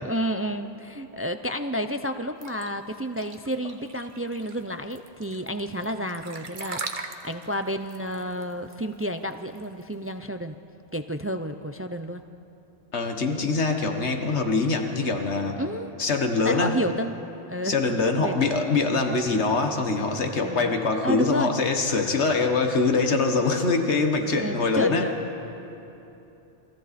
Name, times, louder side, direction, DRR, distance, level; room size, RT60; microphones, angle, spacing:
voice 1, 0.0-10.5 10.9-12.2 15.6-15.9 16.4-17.2 17.5-17.8 18.1-18.4 20.4-20.7 21.0-21.5 24.4-25.2, equal, 20° right, 8 dB, 0.4 m, -30 dB
sound 1, 2.4-10.1, right 4 dB, 50° right, 1.2 m, -39 dB
voice 2, 12.9-15.6 16.0-16.8 17.6-25.1, left 3 dB, 90° left, 4 dB, 1.7 m, -24 dB
28.5 x 22.0 x 4.3 m, 3.0 s
omnidirectional pair, 1.1 m